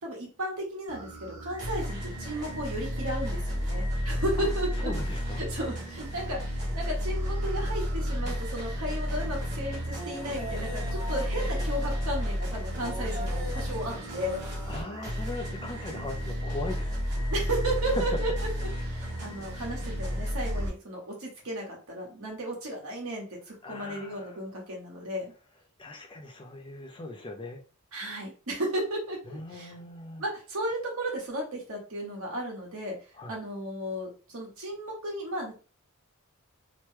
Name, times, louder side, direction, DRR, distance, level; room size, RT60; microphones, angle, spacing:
voice 1, 0.0-4.9 5.4-14.4 17.3-25.3 27.9-29.7 30.2-33.0 33.3-35.5, right 1 dB, 70° right, -1 dB, 1.2 m, -34 dB
sound 1, 0.9-20.7, equal, 35° right, 1.3 m, -32 dB
voice 2, 4.8-5.4 14.7-17.1 17.9-18.0 23.6-24.4 25.8-27.6 29.3-30.2 33.2-33.4, left 2 dB, 25° left, 4 dB, 0.4 m, -39 dB
2.9 x 2.2 x 3.2 m, 0.36 s
head